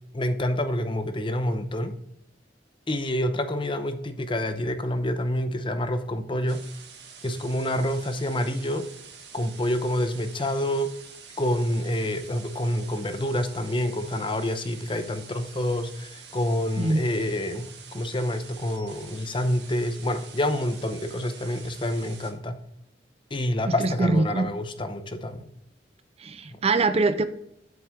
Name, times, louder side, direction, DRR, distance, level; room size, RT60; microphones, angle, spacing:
voice 1, 0.1-2.0 2.9-6.6 7.2-8.9 9.3-10.9 11.4-22.6 23.3-25.4 26.5-26.6, left 1 dB, 30° left, 8 dB, 0.8 m, -27 dB
sound 1, 6.5-22.3, right 6 dB, 70° right, 1.6 m, -47 dB
voice 2, 23.7-24.5 26.2-27.2, right 3 dB, 35° right, 12 dB, 0.5 m, -23 dB
8.0 x 7.4 x 3.7 m, 0.79 s
head